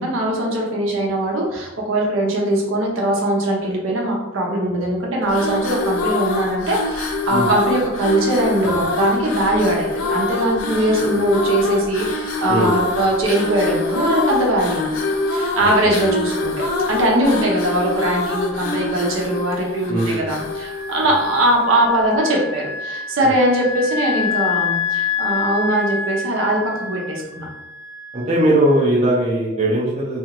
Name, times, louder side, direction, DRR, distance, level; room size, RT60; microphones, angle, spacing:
voice 1, 0.0-14.9 15.3-27.5, right 1 dB, 75° right, -2 dB, 0.7 m, -21 dB
sound 1, 5.2-21.7, left 2 dB, 90° left, 0.4 m, -25 dB
voice 2, 12.5-12.9 15.6-15.7 19.9-20.3 21.0-21.1 23.2-23.3 28.1-30.2, right 1 dB, 30° right, -6 dB, 0.5 m, -19 dB
Wind instrument woodwind instrument, 20.6-28.9, left 5 dB, 25° left, 0.6 m, -27 dB
2.4 x 2.4 x 2.9 m, 1.0 s
head